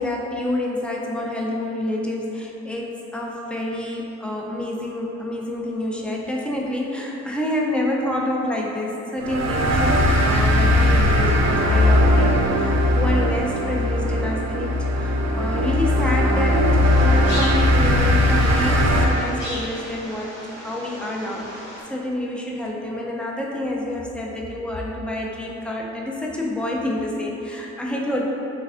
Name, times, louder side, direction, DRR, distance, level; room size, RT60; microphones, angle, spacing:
voice 1, 0.0-14.7 14.9-16.7 17.0-28.3, left 1 dB, 5° left, -3 dB, 0.4 m, -28 dB
sound 1, 9.2-19.0, left 1 dB, 60° right, 0.5 m, -19 dB
sound 2, 16.8-21.8, equal, 60° left, 1.3 m, -36 dB
3.3 x 3.2 x 2.4 m, 2.9 s
cardioid pair, 90°, 30 cm